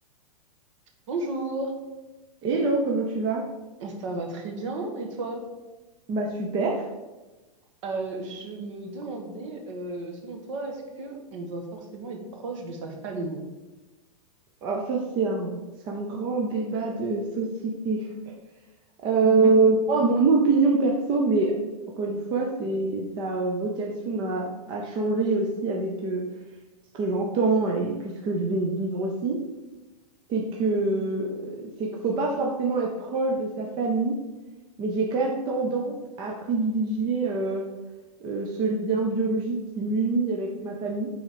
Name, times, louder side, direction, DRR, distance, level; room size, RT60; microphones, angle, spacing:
voice 1, 1.1-1.7 3.8-5.4 7.8-13.4 19.2-19.6, right 2 dB, 50° right, 3 dB, 1.5 m, -33 dB
voice 2, 2.4-3.4 6.1-6.9 14.6-15.5 15.9-18.1 19.0-21.5 22.0-26.2 26.9-29.4 30.3-34.1 34.8-37.6 38.2-41.1, right 3 dB, 25° right, -1 dB, 0.7 m, -25 dB
8.9 x 4.0 x 5.0 m, 1.2 s
supercardioid pair, 160°, 20 cm